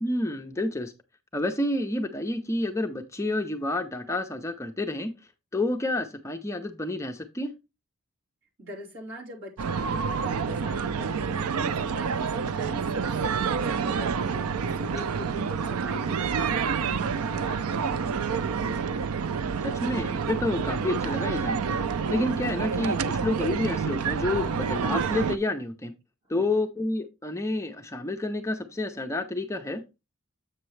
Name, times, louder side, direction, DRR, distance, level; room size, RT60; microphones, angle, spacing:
voice 1, 0.0-0.9 1.3-5.1 5.5-7.5 19.6-21.8 22.1-25.9 26.3-29.8, left 2 dB, 15° left, 0.5 m, -29 dB
voice 2, 8.6-13.0 13.4-18.9 26.4-26.5, right 1 dB, 55° right, 3.0 m, -41 dB
sound 1, 9.6-25.4, right 6 dB, 80° right, 0.4 m, -28 dB
7.8 x 6.5 x 3.1 m
head